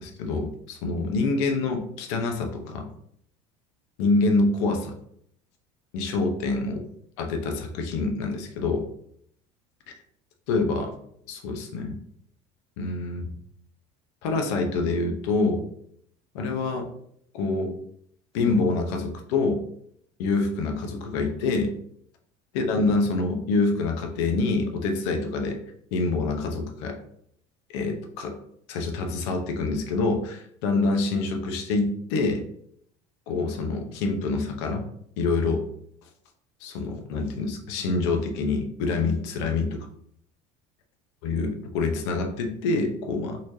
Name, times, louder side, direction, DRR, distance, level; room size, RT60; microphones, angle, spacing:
voice 1, 0.0-2.9 4.0-4.9 5.9-6.8 7.2-8.9 10.5-10.9 11.3-12.0 12.8-13.3 14.2-15.7 16.3-16.9 17.3-17.7 18.3-19.6 20.2-21.7 22.5-25.6 25.9-27.0 27.7-28.3 28.7-32.5 33.3-34.8 35.2-35.6 36.6-39.9 41.2-43.4, left 3 dB, 70° left, 4 dB, 0.8 m, -26 dB
4.1 x 3.2 x 2.7 m, 0.68 s
cardioid pair, 175°, 15 cm